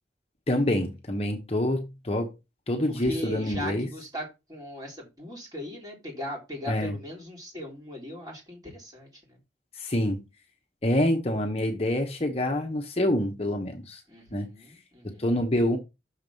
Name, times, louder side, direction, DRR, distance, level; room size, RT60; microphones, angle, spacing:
voice 1, 0.5-2.3 2.7-3.9 6.7-7.0 9.7-10.2 10.8-14.0 14.3-14.5 15.0-15.8, left 1 dB, 35° left, 1.0 m, -26 dB
voice 2, 2.9-9.1 14.1-15.3, equal, 20° right, 3.3 m, -38 dB
6.6 x 4.7 x 5.4 m
head